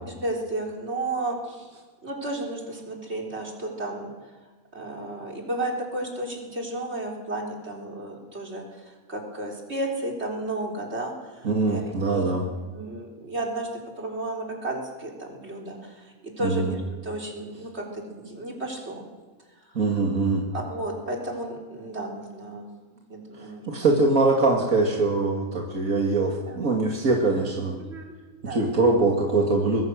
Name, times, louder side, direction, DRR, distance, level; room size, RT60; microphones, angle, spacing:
voice 1, 0.1-1.7 2.0-4.1 4.7-19.1 20.5-22.7 23.1-23.7 26.5-26.6 27.8-28.1 28.4-28.7, right 2 dB, 50° right, 0 dB, 4.3 m, -33 dB
voice 2, 11.4-12.4 16.4-16.7 19.7-20.5 23.3-27.8 28.5-29.8, right 3 dB, 80° right, 0 dB, 2.7 m, -23 dB
24.0 x 21.0 x 6.5 m, 1.3 s
omnidirectional pair, 1.4 m